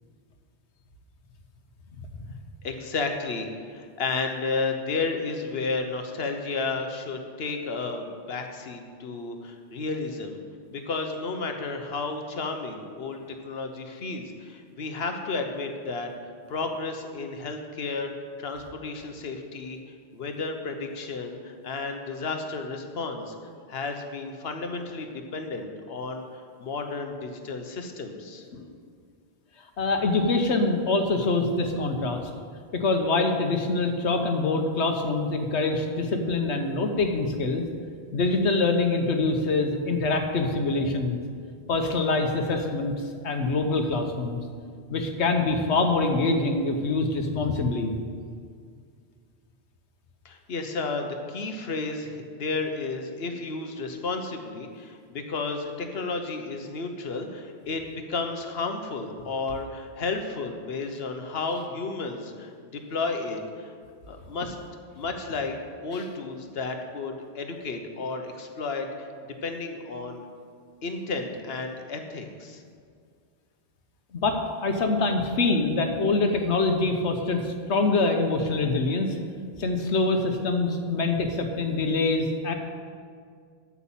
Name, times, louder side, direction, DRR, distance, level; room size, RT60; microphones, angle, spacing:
voice 1, 2.6-10.4 10.7-16.1 16.5-18.1 18.4-19.8 20.1-23.3 23.7-28.5 50.2-62.5 62.9-63.7 64.1-64.6 65.0-65.5 65.8-70.3 70.8-72.6, left 3 dB, 65° left, 5 dB, 1.2 m, -32 dB
voice 2, 29.8-32.3 32.7-37.6 38.1-41.2 41.7-42.9 43.2-44.4 44.9-47.9 74.1-74.4 74.6-79.1 79.6-82.5, left 3 dB, 90° left, 5 dB, 1.3 m, -25 dB
8.3 x 7.3 x 7.3 m, 2.1 s
omnidirectional pair, 1.1 m